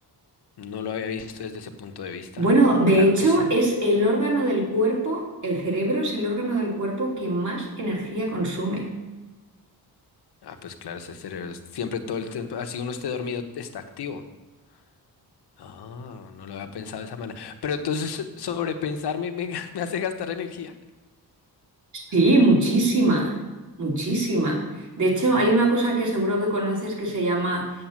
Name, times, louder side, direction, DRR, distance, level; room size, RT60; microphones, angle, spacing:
voice 1, 0.6-2.4 2.9-3.5 10.4-14.2 15.6-20.7, left 6 dB, 85° left, 7 dB, 1.2 m, -32 dB
voice 2, 2.4-8.9 22.1-23.4 23.8-27.7, right 1 dB, 50° right, -2 dB, 3.2 m, -22 dB
8.5 x 7.9 x 7.4 m, 1.2 s
wide cardioid pair, 170°, 39 cm